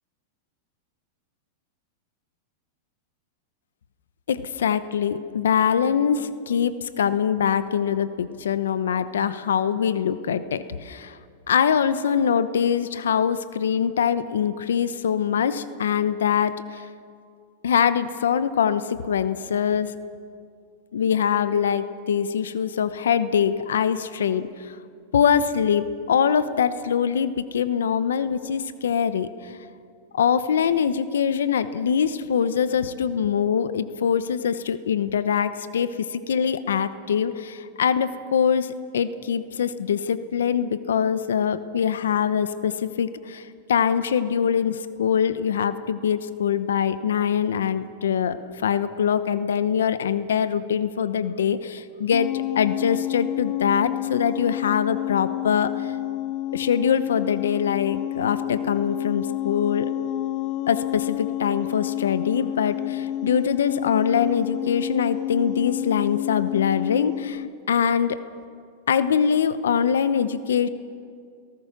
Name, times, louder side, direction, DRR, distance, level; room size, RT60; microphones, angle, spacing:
voice 1, 4.3-11.2 11.5-16.9 17.6-19.9 20.9-24.8 25.1-29.5 30.1-55.9 56.5-59.9 60.7-68.2 68.9-70.7, left 7 dB, 90° left, 13 dB, 0.9 m, -23 dB
sound 1, 52.1-67.5, left 14 dB, 45° left, 0.5 m, -29 dB
29.5 x 18.0 x 6.0 m, 2.3 s
hypercardioid pair, 130°, 0 cm